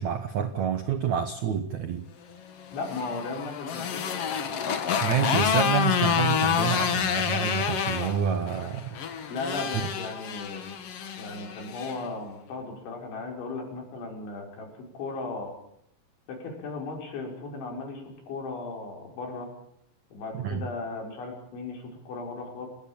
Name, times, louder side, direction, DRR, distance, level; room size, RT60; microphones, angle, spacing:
voice 1, 0.0-2.1 5.0-8.9 20.4-20.6, right 8 dB, 75° right, 10 dB, 1.6 m, -28 dB
Motorcycle, 2.6-12.0, left 7 dB, 55° left, 1.7 m, -28 dB
voice 2, 2.7-4.0 9.3-10.6 11.2-15.5 16.3-19.5 20.1-22.7, left 3 dB, 80° left, 2 dB, 7.6 m, -36 dB
30.0 x 19.5 x 8.8 m, 0.75 s
omnidirectional pair, 5.3 m